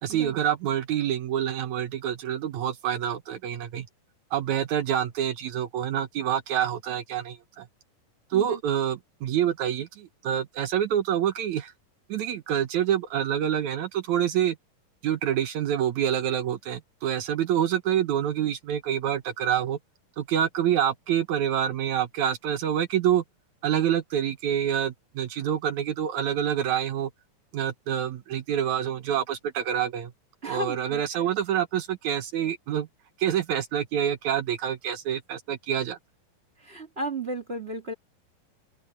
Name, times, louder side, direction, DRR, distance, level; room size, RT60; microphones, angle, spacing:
voice 1, 0.0-3.9 4.3-7.7 8.3-11.7 12.1-14.6 15.0-19.8 20.2-23.2 23.6-27.1 27.5-30.1 30.4-32.9 33.2-36.0, right 10 dB, 70° right, 2.1 m, -27 dB
voice 2, 30.4-31.0 36.6-37.9, right 1 dB, 30° right, 1.3 m, -34 dB
open air
omnidirectional pair, 4.1 m